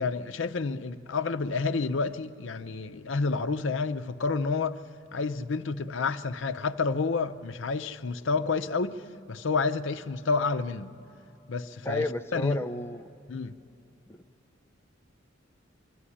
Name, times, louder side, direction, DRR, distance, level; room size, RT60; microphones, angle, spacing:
voice 1, 0.0-4.8 5.1-9.0 9.3-11.0 11.5-12.6 13.3-13.6, left 4 dB, 70° left, 0.6 m, -29 dB
voice 2, 11.8-13.0 14.1-14.2, left 2 dB, 15° left, 0.4 m, -32 dB
25.0 x 12.5 x 10.0 m
head